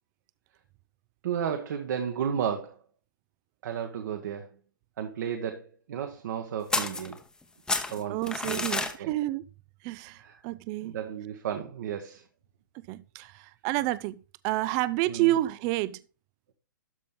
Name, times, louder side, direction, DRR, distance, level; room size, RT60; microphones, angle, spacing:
voice 1, 1.2-2.8 3.6-4.5 5.0-5.6 5.9-7.2 7.9-8.2 8.5-9.1 10.2-10.4 10.8-12.2 15.1-15.3, right 8 dB, 60° right, 1.2 m, -33 dB
sound 1, 6.7-7.4 7.7-9.0, left 3 dB, 5° left, 0.9 m, -30 dB
voice 2, 8.1-9.5 9.8-10.9 12.8-16.0, right 16 dB, 30° right, 0.4 m, -29 dB
12.5 x 4.2 x 3.8 m
hypercardioid pair, 125°, 11 cm